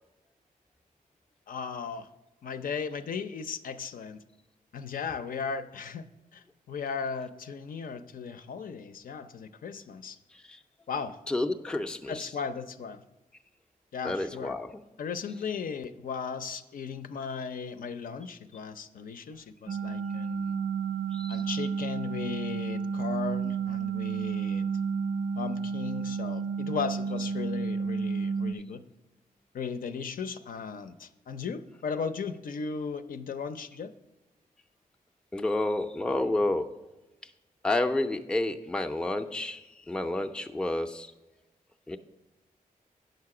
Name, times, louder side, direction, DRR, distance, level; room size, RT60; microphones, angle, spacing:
voice 1, 1.5-2.1 2.4-4.2 4.7-6.0 6.3-10.2 10.9-11.2 12.1-13.0 13.9-14.5 15.0-20.6 21.3-24.7 25.4-28.8 29.5-33.9, left 6 dB, 70° left, 10 dB, 0.5 m, -36 dB
voice 2, 11.3-12.3 14.0-14.8 21.1-21.4 35.3-36.7 37.6-41.1 41.9-42.0, left 2 dB, 5° left, 5 dB, 0.4 m, -30 dB
sound 1, 19.7-28.5, right 5 dB, 90° right, 0.5 m, -31 dB
9.2 x 6.6 x 4.8 m, 1.0 s
wide cardioid pair, 135°, 15 cm